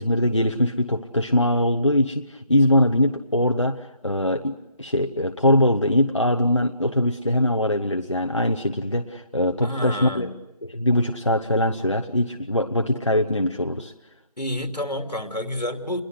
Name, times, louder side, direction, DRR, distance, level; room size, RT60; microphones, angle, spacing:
voice 1, 0.0-4.5 4.8-10.3 10.6-13.9, left 1 dB, 45° left, 4 dB, 1.0 m, -22 dB
voice 2, 9.6-10.3 14.4-16.0, left 1 dB, 70° left, 6 dB, 2.9 m, -29 dB
28.5 x 22.0 x 8.0 m, 0.88 s
figure-of-eight pair, 180°, 21 cm